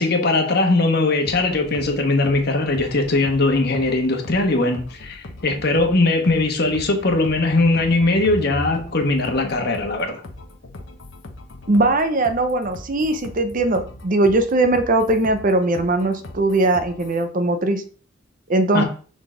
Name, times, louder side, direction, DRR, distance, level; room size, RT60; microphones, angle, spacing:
voice 1, 0.0-10.2 18.7-18.8, left 2 dB, 60° left, 1.2 m, -20 dB
sound 1, 1.2-17.2, left 1 dB, 85° left, 1.0 m, -39 dB
voice 2, 11.7-17.8 18.5-18.8, right 2 dB, 45° right, 0.7 m, -20 dB
6.3 x 3.9 x 3.8 m
head